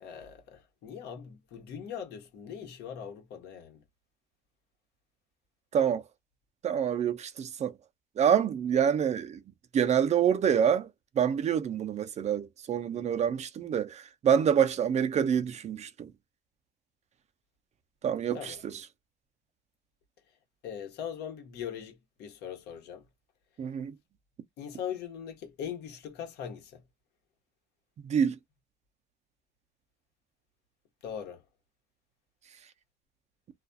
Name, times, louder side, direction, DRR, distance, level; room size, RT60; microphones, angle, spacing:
voice 1, 0.0-3.8 12.9-13.2 18.3-18.6 20.6-23.0 24.6-26.8 31.0-31.4, left 8 dB, 80° left, 1.0 m, -41 dB
voice 2, 5.7-6.0 6.6-7.7 8.2-9.4 9.7-10.9 11.2-16.1 18.0-18.8 23.6-24.0 28.0-28.4, right 8 dB, 40° right, 0.5 m, -27 dB
2.4 x 2.2 x 2.5 m
cardioid pair, 110°, 17 cm